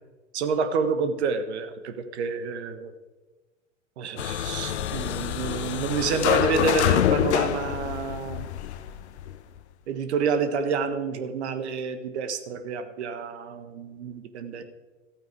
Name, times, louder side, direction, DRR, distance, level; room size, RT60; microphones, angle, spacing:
voice 1, 0.3-2.9 4.0-8.5 9.9-14.6, right 5 dB, 60° right, 9 dB, 1.4 m, -29 dB
sound 1, 4.2-9.4, left 10 dB, 65° left, 0.9 m, -26 dB
14.5 x 9.0 x 4.7 m, 1.2 s
figure-of-eight pair, 100°, 37 cm